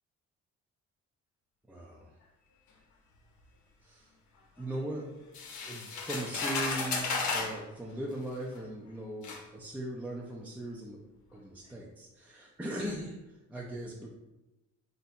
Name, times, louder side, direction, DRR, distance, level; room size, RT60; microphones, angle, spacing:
voice 1, 1.7-2.2 3.8-4.1 4.6-5.1 5.6-11.0 11.3-14.1, right 1 dB, 5° right, -3 dB, 0.5 m, -39 dB
sound 1, 5.3-7.6 8.5-8.6 9.2-9.4, left 4 dB, 70° left, 0.8 m, -33 dB
3.6 x 2.7 x 4.2 m, 0.99 s
cardioid pair, 90°, 30 cm